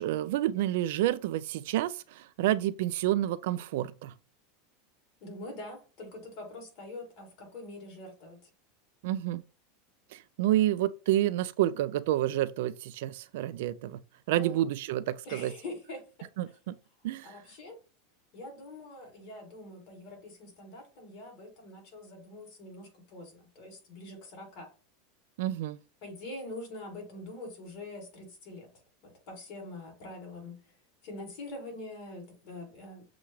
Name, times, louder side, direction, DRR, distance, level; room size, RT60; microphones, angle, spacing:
voice 1, 0.0-4.1 9.0-9.4 10.1-14.0 14.3-15.5 16.4-16.8 17.0-17.3 25.4-25.8, right 13 dB, 70° right, 0.3 m, -29 dB
voice 2, 5.2-8.5 14.3-14.6 15.2-16.3 17.2-17.8 18.3-24.7 26.0-28.7 29.0-30.6 31.0-33.0, left 1 dB, 45° left, 2.8 m, -44 dB
7.0 x 2.4 x 3.1 m
supercardioid pair, 155°, 0 cm